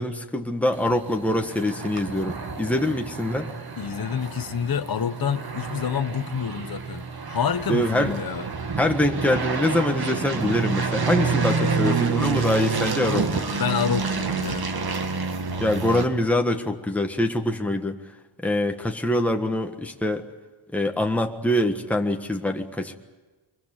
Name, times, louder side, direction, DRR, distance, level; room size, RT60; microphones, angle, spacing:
voice 1, 0.0-3.5 7.7-8.1 8.8-13.4 15.6-18.0 18.4-20.3 20.7-22.9, left 1 dB, 5° left, 1.5 m, -24 dB
sound 1, 0.7-16.0, right 5 dB, 50° right, 2.1 m, -28 dB
voice 2, 3.8-8.5 11.5-12.0 13.5-14.7, left 7 dB, 50° left, 1.2 m, -28 dB
24.5 x 22.5 x 8.9 m
wide cardioid pair, 155°, 47 cm